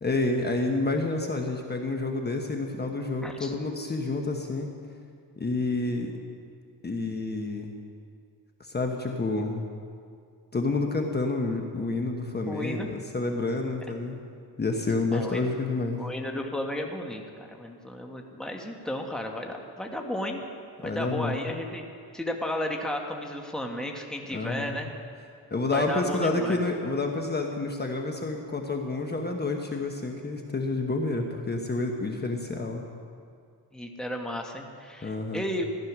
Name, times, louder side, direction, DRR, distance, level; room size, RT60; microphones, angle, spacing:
voice 1, 0.0-4.7 5.4-6.1 6.8-7.7 8.6-9.7 10.5-14.2 14.6-16.0 20.8-21.3 24.3-24.7 25.5-32.8 35.0-35.4, left 3 dB, 25° left, 2 dB, 1.2 m, -29 dB
voice 2, 3.2-3.5 12.5-12.9 15.1-15.4 16.0-20.4 20.8-21.9 22.1-24.9 25.7-26.6 33.7-35.6, left 1 dB, ahead, 1 dB, 1.4 m, -33 dB
15.0 x 11.5 x 6.1 m, 2.3 s
cardioid pair, 105°, 40 cm